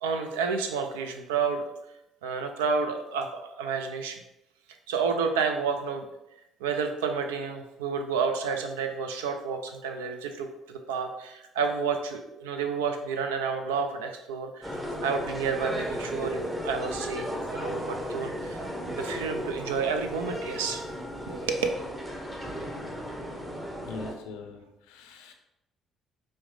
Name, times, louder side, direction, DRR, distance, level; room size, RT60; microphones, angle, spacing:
voice 1, 0.0-1.7 2.2-4.2 4.9-6.0 6.6-14.8 15.0-18.6 19.0-20.8 21.3-21.7, right 5 dB, 90° right, 6 dB, 0.4 m, -30 dB
sound 1, 14.6-24.1, equal, 15° right, 0.8 m, -35 dB
voice 2, 23.9-25.3, left 3 dB, 80° left, 5 dB, 0.4 m, -42 dB
4.8 x 2.1 x 3.1 m, 0.87 s
hypercardioid pair, 60°, 0 cm